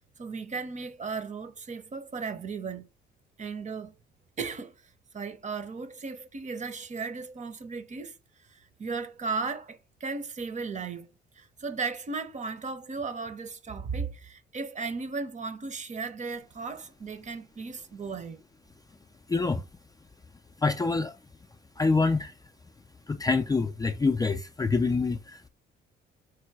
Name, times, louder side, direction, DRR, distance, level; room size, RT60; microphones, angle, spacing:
voice 1, 0.2-2.9 3.4-3.9 4.4-4.7 5.1-8.2 8.5-18.4, right 4 dB, 35° right, 0.8 m, -36 dB
voice 2, 19.3-19.6 20.6-21.1 21.8-22.3 23.1-25.5, left 4 dB, 20° left, 0.4 m, -26 dB
4.6 x 2.2 x 4.6 m
cardioid pair, 90°, 20 cm